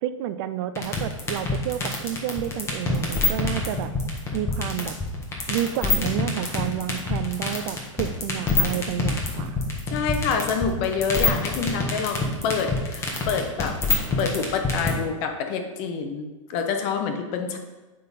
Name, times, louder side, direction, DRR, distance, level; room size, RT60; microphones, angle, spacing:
voice 1, 0.0-3.9 4.3-4.9 5.5-9.6, right 11 dB, 45° right, 12 dB, 0.4 m, -30 dB
sound 1, 0.8-14.9, left 4 dB, 15° left, 1.4 m, -25 dB
voice 2, 9.9-13.8 14.2-17.6, left 6 dB, 45° left, 5 dB, 1.0 m, -27 dB
8.8 x 3.8 x 4.1 m, 1.2 s
hypercardioid pair, 130°, 17 cm